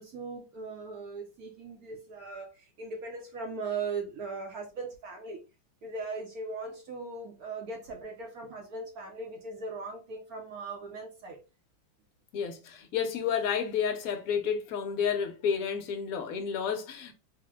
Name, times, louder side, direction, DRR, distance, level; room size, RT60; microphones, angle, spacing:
voice 1, 0.0-5.4 5.8-11.4, right 4 dB, 65° right, 1.0 m, -39 dB
voice 2, 12.3-17.1, left 7 dB, 60° left, 0.9 m, -31 dB
4.1 x 2.1 x 3.4 m
omnidirectional pair, 2.1 m